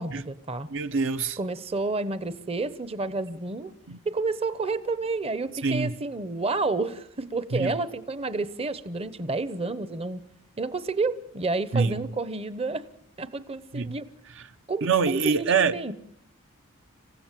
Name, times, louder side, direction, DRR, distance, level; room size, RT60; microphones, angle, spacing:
voice 1, 0.0-0.7 1.4-3.7 4.0-10.2 10.6-12.9 13.2-14.1 14.7-15.9, right 3 dB, 30° right, 0.8 m, -30 dB
voice 2, 0.7-1.4 3.9-4.0 5.6-5.9 7.5-7.7 11.7-12.1 13.7-13.9 14.8-15.8, right 5 dB, 60° right, 0.9 m, -25 dB
27.5 x 16.0 x 7.5 m
head